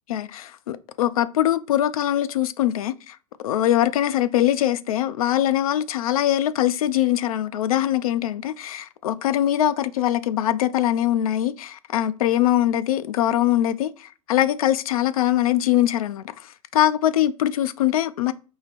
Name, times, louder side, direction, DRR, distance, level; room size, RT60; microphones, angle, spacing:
voice 1, 0.1-3.2 3.4-16.2 16.7-18.3, left 12 dB, 75° left, 0.4 m, -22 dB
4.6 x 2.8 x 3.3 m
hypercardioid pair, 100°, 18 cm